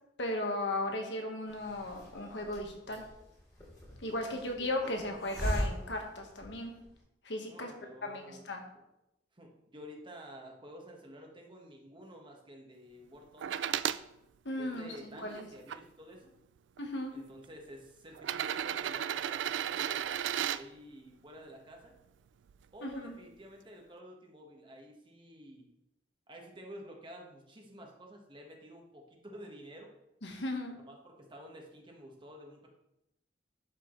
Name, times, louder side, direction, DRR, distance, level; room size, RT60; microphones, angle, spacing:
voice 1, 0.2-3.0 4.0-6.7 7.2-7.7 8.0-8.6 14.4-15.4 16.8-17.1 22.8-23.2 30.2-30.7, left 1 dB, 75° left, 3 dB, 1.4 m, -36 dB
Hiss, 1.5-7.0, equal, 20° left, 3.3 m, -40 dB
voice 2, 4.2-5.0 7.5-8.6 9.3-13.7 14.6-16.3 17.1-21.9 22.7-25.6 26.3-29.9 30.9-32.7, equal, 30° right, 0 dB, 1.4 m, -51 dB
sound 1, 13.4-14.0 14.7-15.8 16.8-16.9 18.1-20.6 22.5-22.6, right 10 dB, 90° right, 0.3 m, -34 dB
11.5 x 5.6 x 3.2 m, 0.86 s
head